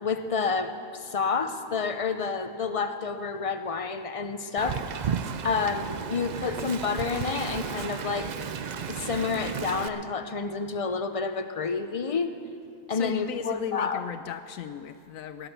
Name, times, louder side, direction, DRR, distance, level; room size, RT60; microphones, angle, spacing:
voice 1, 0.0-4.8 5.4-8.3 8.9-12.3 12.9-14.0, left 5 dB, 40° left, 8 dB, 0.5 m, -29 dB
Wind, 4.6-9.9, right 7 dB, 70° right, 0.4 m, -33 dB
voice 2, 12.9-15.5, left 9 dB, 75° left, 11 dB, 1.0 m, -36 dB
17.5 x 10.5 x 6.9 m, 2.5 s
omnidirectional pair, 1.4 m